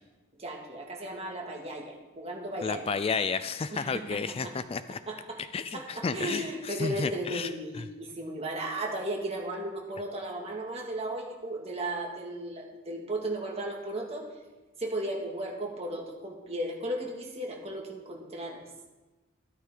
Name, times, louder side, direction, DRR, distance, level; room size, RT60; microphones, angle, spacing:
voice 1, 0.4-2.8 3.7-4.5 5.1-5.4 5.7-14.2 14.8-18.6, right 1 dB, 35° right, 0 dB, 2.2 m, -35 dB
voice 2, 2.6-5.0 5.4-7.9, left 5 dB, 30° left, 12 dB, 0.4 m, -32 dB
13.0 x 12.5 x 3.8 m, 1.2 s
head